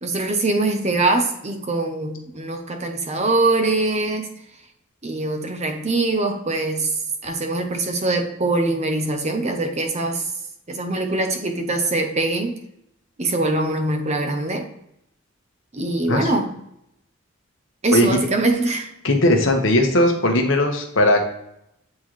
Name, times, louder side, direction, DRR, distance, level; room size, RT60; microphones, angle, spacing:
voice 1, 0.0-4.3 5.0-6.9 7.2-10.2 10.7-12.6 13.2-14.7 15.7-16.5 17.8-18.9, right 2 dB, 30° right, 4 dB, 0.7 m, -23 dB
voice 2, 19.0-21.2, left 1 dB, 65° left, 3 dB, 1.1 m, -18 dB
8.3 x 3.7 x 3.1 m, 0.76 s
head